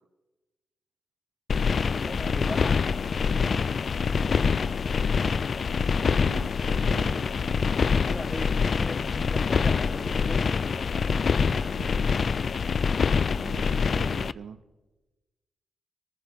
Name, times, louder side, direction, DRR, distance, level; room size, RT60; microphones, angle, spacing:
sound 1, 1.5-14.3, left 5 dB, 60° left, 0.4 m, -25 dB
voice 1, 1.9-2.9 8.0-11.4, left 1 dB, 20° left, 3 dB, 1.5 m, -39 dB
voice 2, 5.7-7.5 11.5-11.9 13.3-14.6, right 7 dB, 80° right, 12 dB, 0.7 m, -43 dB
22.0 x 14.5 x 3.6 m, 1.1 s
cardioid pair, 70°, 0 cm